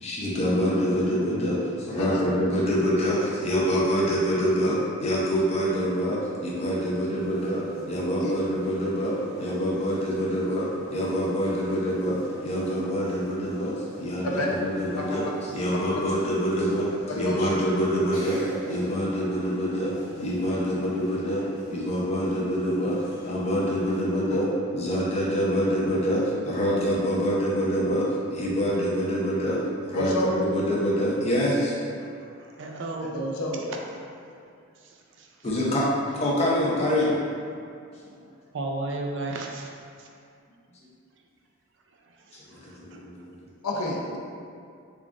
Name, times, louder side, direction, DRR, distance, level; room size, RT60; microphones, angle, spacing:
voice 1, 0.0-15.2 15.5-18.4 18.7-19.9 20.2-24.5 24.7-31.8 35.4-35.9 36.2-37.2 38.1-38.2 42.5-43.3, equal, 30° left, -5 dB, 0.6 m, -26 dB
sound 1, 7.2-24.0, equal, 65° left, 1.1 m, -45 dB
voice 2, 29.9-30.3 33.1-33.7 43.6-44.2, left 1 dB, 85° left, -2 dB, 0.6 m, -29 dB
voice 3, 32.0-33.2 34.1-34.2 34.8-35.3 37.5-40.1 42.2-43.0, right 2 dB, 55° right, 1 dB, 0.4 m, -36 dB
3.7 x 2.4 x 3.6 m, 2.3 s
head